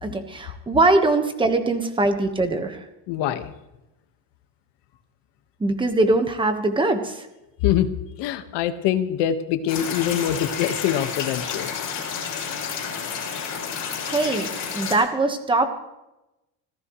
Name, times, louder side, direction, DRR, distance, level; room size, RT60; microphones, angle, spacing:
voice 1, 0.0-2.8 5.6-7.3 14.0-15.7, right 2 dB, 10° right, 7 dB, 1.4 m, -22 dB
voice 2, 3.1-3.5 7.6-7.9 8.2-11.7, left 10 dB, 70° left, 9 dB, 1.6 m, -24 dB
sound 1, 9.7-15.0, left 6 dB, 45° left, 6.1 m, -30 dB
25.5 x 16.0 x 3.2 m, 0.95 s
cardioid pair, 160°, 43 cm